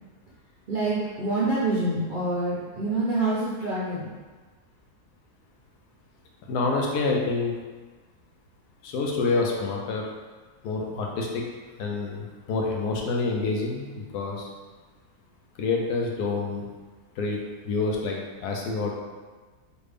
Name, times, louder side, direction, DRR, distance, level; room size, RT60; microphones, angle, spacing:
voice 1, 0.7-4.1, right 2 dB, 60° right, -9 dB, 0.5 m, -26 dB
voice 2, 6.5-7.5 8.8-10.1 10.6-11.4 11.8-14.5 15.6-16.7 17.2-17.4 17.6-18.9, left 3 dB, 90° left, 0 dB, 1.2 m, -27 dB
3.2 x 2.5 x 3.2 m, 1.4 s
omnidirectional pair, 1.6 m